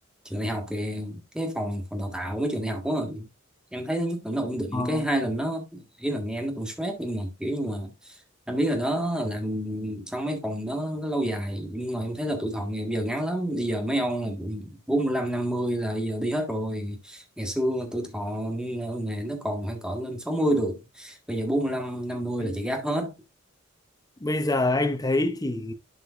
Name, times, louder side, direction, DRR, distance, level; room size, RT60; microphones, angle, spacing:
voice 1, 0.2-3.3 3.7-8.2 8.5-23.1, right 1 dB, 5° right, 1.6 m, -29 dB
voice 2, 4.7-5.0 22.4-22.5 24.2-25.7, left 2 dB, 20° left, 0.7 m, -26 dB
12.0 x 5.0 x 2.5 m
head